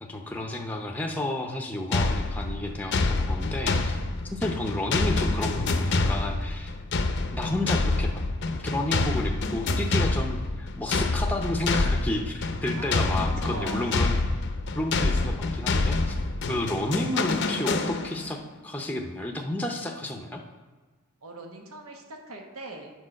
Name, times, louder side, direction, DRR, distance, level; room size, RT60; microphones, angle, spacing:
voice 1, 0.0-3.9 4.3-6.7 7.3-8.1 8.5-14.3 14.8-16.1 16.4-20.4, left 1 dB, 5° left, 2 dB, 0.6 m, -31 dB
sound 1, 1.9-18.4, left 3 dB, 55° left, 0.6 m, -27 dB
voice 2, 12.7-14.0 21.2-22.9, right 2 dB, 85° right, 2 dB, 1.1 m, -41 dB
8.6 x 4.7 x 6.4 m, 1.3 s
head